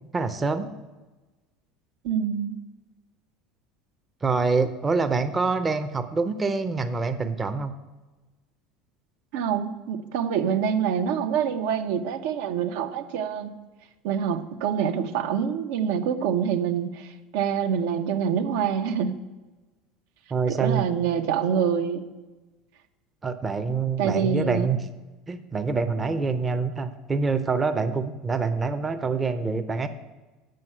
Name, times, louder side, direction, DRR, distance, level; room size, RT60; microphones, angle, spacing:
voice 1, 0.1-0.7 4.2-7.7 20.3-20.8 23.2-24.8 25.3-29.9, right 4 dB, 15° right, 8 dB, 0.5 m, -26 dB
voice 2, 2.0-2.6 9.3-13.5 14.0-19.2 20.5-22.0 24.0-24.7, right 7 dB, 80° right, 8 dB, 0.7 m, -26 dB
7.7 x 5.6 x 7.7 m, 1.2 s
cardioid pair, 140°, 0 cm